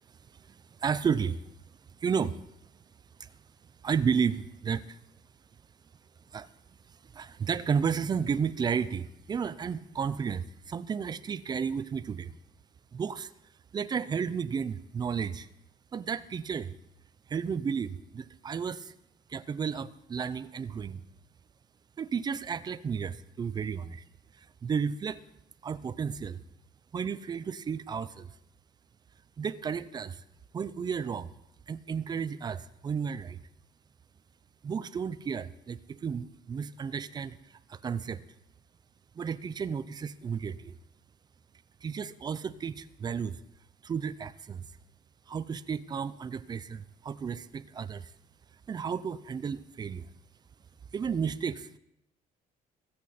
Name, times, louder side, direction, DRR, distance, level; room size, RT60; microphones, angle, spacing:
voice 1, 0.8-1.4 2.0-2.4 3.2-3.3 3.8-5.0 6.3-6.5 7.1-12.3 12.9-13.3 13.7-15.5 15.9-16.7 17.3-18.9 19.3-21.0 22.0-24.0 24.4-25.2 25.6-26.4 26.9-28.3 29.4-30.2 30.5-31.3 31.7-33.4 34.6-37.4 37.7-38.2 39.2-40.7 41.8-43.4 43.8-44.6 45.3-48.1 48.7-50.1 50.9-51.8, right 6 dB, 25° right, 15 dB, 0.5 m, -32 dB
23.0 x 8.4 x 4.2 m, 0.80 s
cardioid pair, 145°, 16 cm